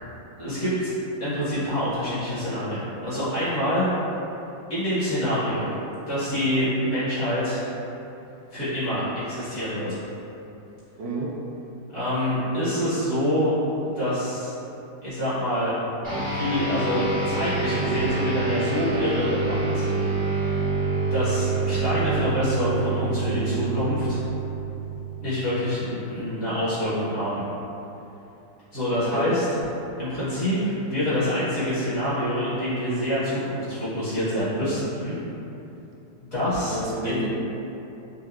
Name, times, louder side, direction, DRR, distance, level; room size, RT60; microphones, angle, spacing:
voice 1, 0.4-0.9 1.2-3.9 4.7-5.7 6.1-7.6 8.5-10.0 11.9-13.5 13.9-14.5 15.0-15.7 16.1-19.9 21.1-24.2 25.2-27.4 28.7-29.4 30.0-35.2 36.3-37.2, equal, 50° left, -13 dB, 2.0 m, -26 dB
voice 2, 11.0-11.3 28.9-29.4 36.7-37.3, right 1 dB, 80° right, -4 dB, 1.3 m, -30 dB
sound 1, 16.0-25.8, right 4 dB, 25° right, 0.4 m, -27 dB
5.4 x 2.6 x 2.3 m, 2.9 s
omnidirectional pair, 1.9 m